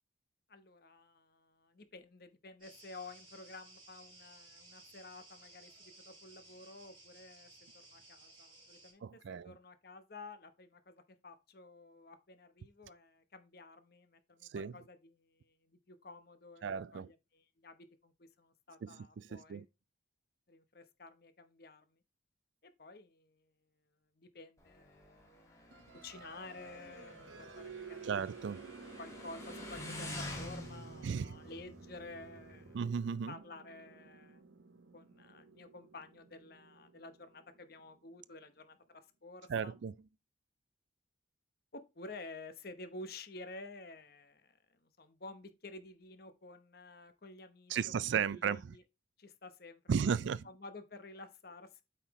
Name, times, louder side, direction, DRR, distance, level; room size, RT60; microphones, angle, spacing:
voice 1, 0.5-7.5 7.8-19.7 20.5-22.0 22.8-23.5 24.1-28.3 29.0-32.8 33.3-34.4 34.9-39.7 41.7-48.8 49.2-50.1 50.4-51.8, left 2 dB, 55° left, 0.9 m, -52 dB
sound 1, 2.6-8.9, right 2 dB, 25° right, 4.2 m, -58 dB
voice 2, 9.0-9.5 14.5-14.7 16.6-17.1 18.8-19.6 28.0-28.7 31.0-31.3 32.7-33.3 39.5-39.9 47.7-48.7 49.9-50.4, right 7 dB, 70° right, 0.3 m, -35 dB
Motorcycle, 24.6-32.9, left 1 dB, 15° left, 1.9 m, -48 dB
sound 2, 25.7-38.2, right 5 dB, 90° right, 0.9 m, -53 dB
8.3 x 5.7 x 3.1 m
head